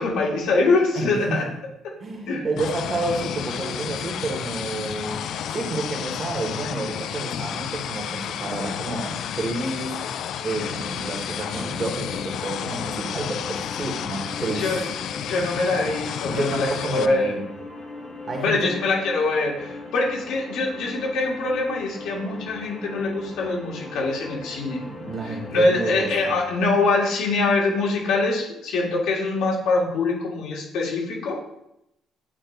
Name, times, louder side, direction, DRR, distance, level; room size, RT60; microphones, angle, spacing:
voice 1, 0.0-1.4 2.3-2.5 14.5-14.8 15.2-17.3 18.4-24.9 25.5-31.4, left 3 dB, 75° left, -1 dB, 1.8 m, -24 dB
voice 2, 1.0-1.4 2.0-9.9 10.4-14.7 16.3-17.4 18.3-18.7 24.9-26.3, right 2 dB, 30° right, 1 dB, 1.2 m, -30 dB
sound 1, 2.6-17.1, left 9 dB, 55° left, 0.3 m, -31 dB
sound 2, 10.6-26.4, left 2 dB, 30° left, 1.0 m, -40 dB
8.5 x 3.0 x 4.5 m, 0.81 s
cardioid pair, 175°, 0 cm